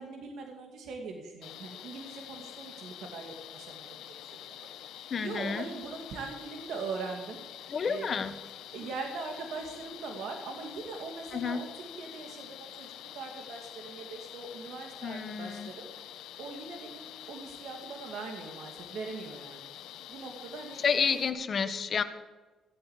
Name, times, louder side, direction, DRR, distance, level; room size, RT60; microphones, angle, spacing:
voice 1, 0.0-4.1 4.4-4.7 5.2-7.4 7.8-8.2 8.7-15.9 16.4-19.7 20.1-20.8 21.2-21.7, right 4 dB, 75° right, 2 dB, 2.3 m, -41 dB
sound 1, 1.4-21.3, left 11 dB, 85° left, 1.0 m, -47 dB
voice 2, 5.1-5.7 7.7-8.3 11.3-11.6 15.0-15.7 20.8-22.0, left 6 dB, 50° left, 10 dB, 1.4 m, -30 dB
16.0 x 8.8 x 8.2 m, 1.2 s
cardioid pair, 90°, 0 cm